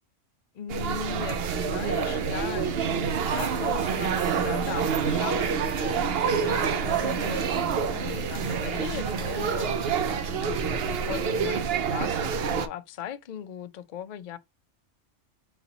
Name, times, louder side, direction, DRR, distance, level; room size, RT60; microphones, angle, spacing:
voice 1, 0.5-14.4, left 10 dB, 75° left, 0.4 m, -38 dB
sound 1, 0.7-12.7, right 6 dB, 60° right, 0.7 m, -27 dB
sound 2, 3.1-9.7, right 1 dB, 25° right, 1.1 m, -45 dB
4.0 x 3.9 x 2.8 m
omnidirectional pair, 1.3 m